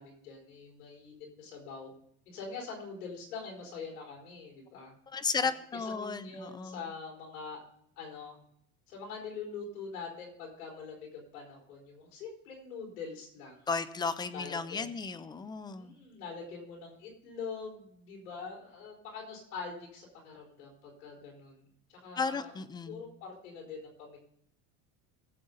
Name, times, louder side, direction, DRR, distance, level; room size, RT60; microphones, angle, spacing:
voice 1, 0.0-1.9 2.2-4.9 5.4-5.5 5.7-7.6 8.0-8.4 8.9-13.7 14.3-14.9 15.8-21.6 21.9-22.5 22.8-24.2, left 5 dB, 90° left, 1 dB, 4.7 m, -44 dB
voice 2, 5.1-6.8 13.7-16.0 22.2-23.0, left 4 dB, 10° left, 14 dB, 0.4 m, -34 dB
19.5 x 7.5 x 3.9 m, 0.68 s
supercardioid pair, 135°, 43 cm